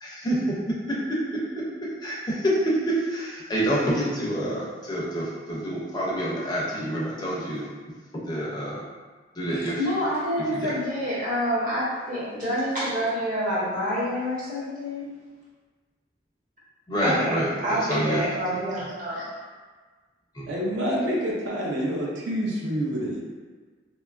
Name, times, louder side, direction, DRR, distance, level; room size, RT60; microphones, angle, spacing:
voice 1, 0.0-1.6 2.0-7.7 8.1-8.9 9.3-9.8 10.4-10.7 16.9-18.6 20.3-20.5, right 1 dB, 20° left, -5 dB, 0.4 m, -27 dB
voice 2, 9.8-15.1 17.0-19.3, equal, 45° right, -8 dB, 0.8 m, -27 dB
voice 3, 20.5-23.2, equal, 80° right, -3 dB, 0.5 m, -27 dB
2.7 x 2.3 x 2.3 m, 1.4 s
head